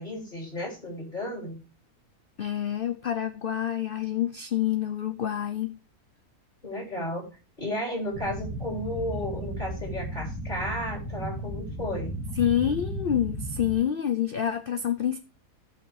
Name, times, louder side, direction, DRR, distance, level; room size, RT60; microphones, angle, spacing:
voice 1, 0.0-1.6 6.6-7.3 7.6-12.1, left 1 dB, 30° left, 3.6 m, -33 dB
voice 2, 2.4-5.8 12.4-15.2, left 10 dB, 55° left, 0.6 m, -27 dB
sound 1, 8.1-13.7, right 1 dB, 75° left, 5.3 m, -35 dB
17.0 x 5.7 x 3.3 m
omnidirectional pair, 1.7 m